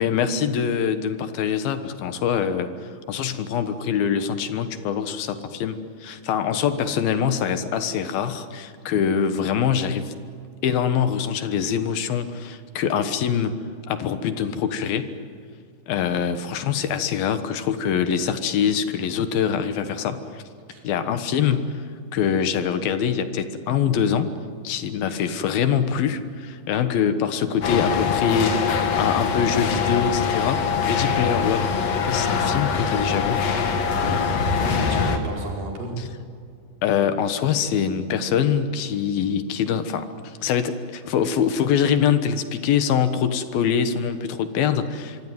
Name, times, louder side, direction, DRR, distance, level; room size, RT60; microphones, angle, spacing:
voice 1, 0.0-2.7 3.1-10.1 10.6-13.6 13.9-15.1 15.9-20.4 20.8-21.9 22.1-24.3 24.6-28.7 29.0-31.8 32.1-33.5 36.0-36.1 36.8-45.2, left 7 dB, 80° left, 10 dB, 3.2 m, -24 dB
sound 1, 27.6-35.2, left 6 dB, 50° left, 2.7 m, -23 dB
voice 2, 33.8-36.0, right 2 dB, 70° right, 0 dB, 6.5 m, -32 dB
26.0 x 23.0 x 9.3 m, 2.3 s
omnidirectional pair, 4.2 m